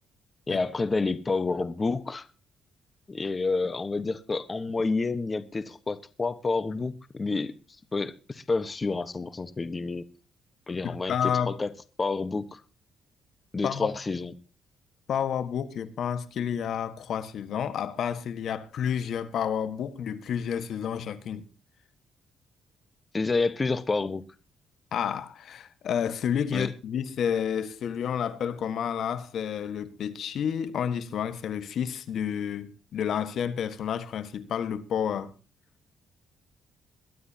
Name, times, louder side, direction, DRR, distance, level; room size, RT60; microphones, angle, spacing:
voice 1, 0.5-2.3 3.1-7.5 7.9-10.0 10.7-11.7 12.0-12.6 13.5-14.3 23.1-24.2 26.5-26.7, left 3 dB, 30° left, 1.2 m, -29 dB
voice 2, 10.8-11.5 13.6-13.9 15.1-21.5 24.9-35.3, left 8 dB, 65° left, 1.4 m, -30 dB
22.5 x 12.0 x 2.8 m
cardioid pair, 90°, 0 cm